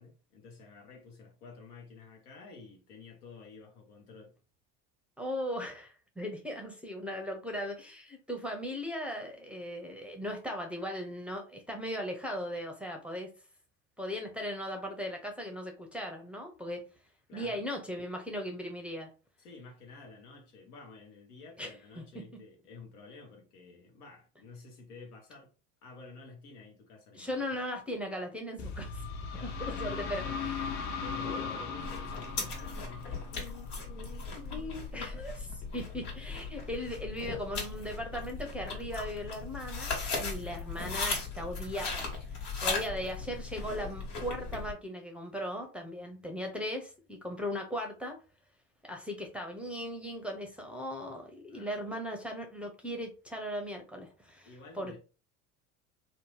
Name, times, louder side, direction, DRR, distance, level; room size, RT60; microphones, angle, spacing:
voice 1, 0.0-4.3 17.3-17.6 19.4-25.5 25.8-27.4 29.3-30.6 30.9-35.3 51.5-52.0 54.4-55.0, left 4 dB, 80° left, 1.1 m, -51 dB
voice 2, 5.2-13.3 14.0-16.8 17.3-19.1 21.6-21.7 22.0-22.1 27.1-29.0 29.4-31.5 34.5-35.3 35.7-48.2 48.8-54.5 54.7-55.0, equal, 5° right, 0.6 m, -38 dB
sound 1, 28.6-34.2, left 5 dB, 40° left, 0.6 m, -38 dB
sound 2, 31.8-44.7, left 4 dB, 55° left, 1.4 m, -38 dB
2.8 x 2.0 x 3.1 m
hypercardioid pair, 75°, 44 cm